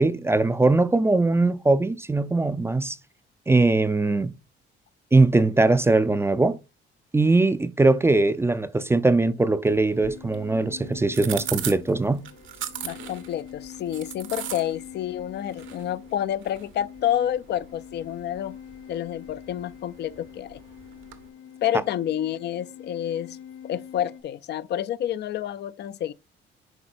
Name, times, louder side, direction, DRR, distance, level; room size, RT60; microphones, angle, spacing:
voice 1, 0.0-3.0 3.5-4.3 5.1-6.6 7.1-12.2, right 2 dB, 10° right, 0.4 m, -21 dB
sound 1, 9.6-21.3, right 10 dB, 75° right, 1.1 m, -40 dB
sound 2, 9.9-24.2, left 9 dB, 80° left, 1.4 m, -44 dB
voice 2, 12.8-18.6 18.9-20.6 21.6-23.4 23.6-26.1, left 11 dB, 55° left, 0.4 m, -29 dB
11.0 x 4.3 x 2.5 m
cardioid pair, 115°, 20 cm